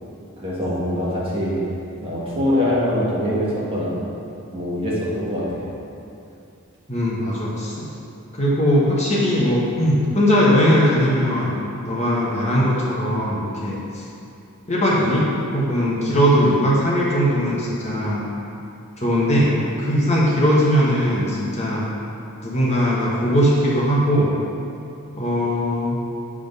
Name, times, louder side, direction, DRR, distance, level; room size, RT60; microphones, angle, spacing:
voice 1, 0.4-1.6 2.0-4.0 4.5-5.7, left 1 dB, 25° right, -7 dB, 1.4 m, -23 dB
voice 2, 6.9-7.8 8.3-11.6 11.8-14.0 14.7-18.3 19.0-19.5 19.8-21.9 22.4-24.3 25.2-26.0, equal, 30° left, -6 dB, 1.1 m, -19 dB
8.5 x 3.7 x 5.4 m, 2.7 s
head